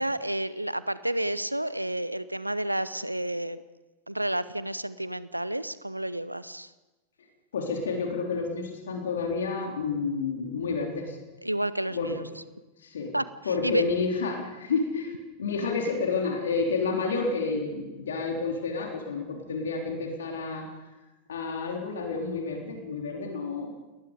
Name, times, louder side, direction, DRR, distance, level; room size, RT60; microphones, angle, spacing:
voice 1, 0.0-3.6 4.1-6.7 11.4-12.2 13.1-13.8, right 1 dB, 85° right, 16 dB, 0.8 m, -30 dB
voice 2, 7.5-11.2 11.9-12.1 12.8-13.1 13.5-15.1 15.4-20.7 21.3-23.7, left 4 dB, 65° left, 1 dB, 3.5 m, -30 dB
29.0 x 19.5 x 5.1 m, 1.1 s
figure-of-eight pair, 90°, 0 cm